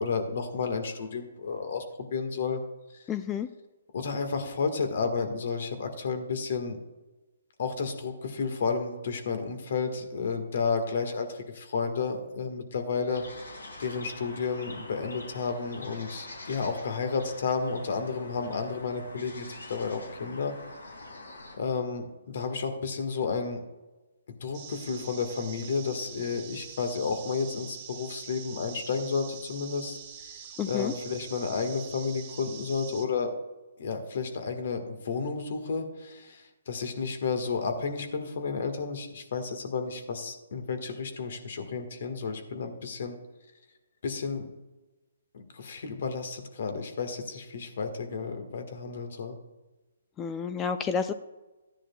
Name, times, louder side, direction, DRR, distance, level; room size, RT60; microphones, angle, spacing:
voice 1, 0.0-2.6 2.9-3.0 3.9-6.8 7.6-13.2 13.8-20.5 21.6-23.6 24.4-30.0 30.6-33.3 33.8-43.2 44.0-44.5 45.3-49.4, left 5 dB, 60° left, 6 dB, 1.6 m, -32 dB
voice 2, 3.1-3.5 30.6-30.9 50.2-51.1, left 6 dB, 15° left, 10 dB, 0.4 m, -30 dB
sound 1, 13.1-21.6, left 2 dB, 85° left, 2.5 m, -45 dB
sound 2, 24.5-33.1, right 8 dB, 35° right, 1.4 m, -45 dB
14.5 x 10.0 x 2.3 m, 1.1 s
hypercardioid pair, 140°, 0 cm